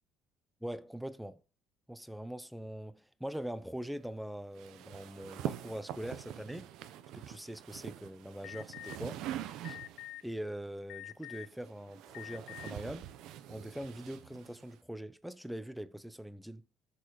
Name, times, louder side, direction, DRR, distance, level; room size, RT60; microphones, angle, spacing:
voice 1, 0.6-1.4 1.9-6.7 7.1-9.2 9.6-9.8 10.2-13.1 13.5-16.6, right 1 dB, ahead, 0.7 m, -42 dB
sound 1, 4.6-10.2 11.2-14.8, right 11 dB, 70° right, 1.0 m, -44 dB
Alarm, 8.4-9.0 9.6-10.2 10.9-11.5 12.1-12.7, left 16 dB, 70° left, 0.7 m, -46 dB
13.0 x 7.0 x 4.7 m
cardioid pair, 140°, 0 cm